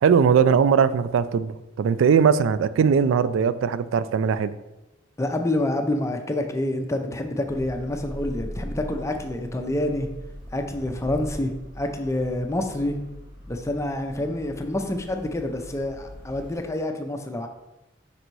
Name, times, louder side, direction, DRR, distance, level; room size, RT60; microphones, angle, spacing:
voice 1, 0.0-4.5, right 6 dB, 75° right, 15 dB, 0.3 m, -20 dB
voice 2, 5.2-10.1 10.5-13.0 13.5-17.5, left 1 dB, 15° left, 5 dB, 0.5 m, -27 dB
sound 1, 7.4-16.7, equal, 55° right, 1.9 m, -40 dB
5.4 x 3.9 x 4.5 m, 1.0 s
head